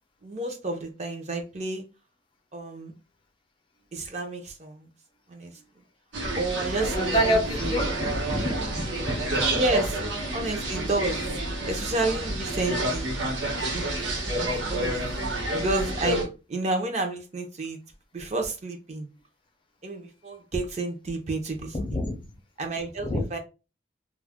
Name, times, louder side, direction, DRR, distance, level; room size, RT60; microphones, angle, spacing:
voice 1, 0.2-1.8 2.5-2.9 3.9-4.9 5.3-5.5 6.4-7.9 9.5-10.0 10.3-11.4 11.7-13.1 13.7-13.8 14.4-15.0 15.5-17.8 18.1-19.1 19.8-22.0 22.6-23.4, right 2 dB, 40° right, 0.5 m, -30 dB
sound 1, 6.1-16.2, right 1 dB, 85° right, 0.8 m, -29 dB
voice 2, 6.8-9.5 21.7-22.2 23.0-23.2, equal, 25° left, 0.5 m, -28 dB
2.3 x 2.1 x 3.4 m
head